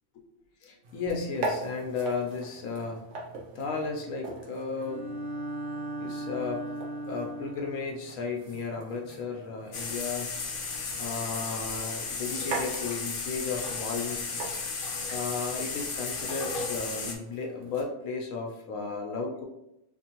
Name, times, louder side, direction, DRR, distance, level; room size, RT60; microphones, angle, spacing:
voice 1, 0.6-3.0 3.5-5.1 5.6-6.6 7.1-10.3 11.0-14.4 15.1-19.5, left 4 dB, 80° left, 1 dB, 1.0 m, -34 dB
sound 1, 0.8-17.8, right 3 dB, 70° right, 1.1 m, -42 dB
Bowed string instrument, 4.7-7.9, right 1 dB, 30° right, 0.7 m, -37 dB
sound 2, 9.7-17.2, left 4 dB, 55° left, 0.7 m, -34 dB
4.2 x 2.6 x 2.9 m, 0.84 s
omnidirectional pair, 1.3 m